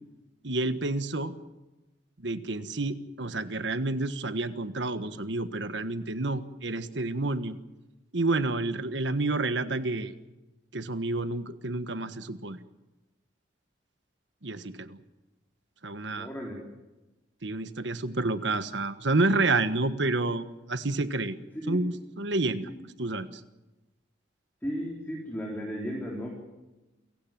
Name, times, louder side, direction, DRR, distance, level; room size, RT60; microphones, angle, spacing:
voice 1, 0.4-1.3 2.2-7.6 8.1-10.1 10.7-12.6 14.4-15.0 15.8-16.3 17.4-21.4 21.7-22.7 23.0-23.3, right 2 dB, 70° right, 11 dB, 1.4 m, -29 dB
voice 2, 16.2-16.6 21.5-21.9 22.6-22.8 24.6-26.3, equal, 10° left, -2 dB, 4.1 m, -35 dB
28.5 x 16.5 x 7.5 m, 1.1 s
head